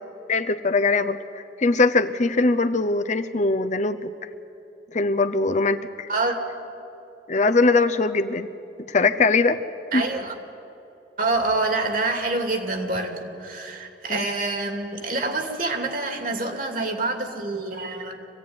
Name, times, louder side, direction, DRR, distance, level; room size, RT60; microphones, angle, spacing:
voice 1, 0.3-4.1 4.9-6.1 7.3-8.5 8.9-9.6 9.9-10.0 14.1-14.2, left 3 dB, 40° left, 10 dB, 0.8 m, -21 dB
voice 2, 9.9-10.4 11.2-18.3, right 3 dB, 50° right, 4 dB, 2.6 m, -26 dB
26.0 x 16.5 x 9.6 m, 2.9 s
head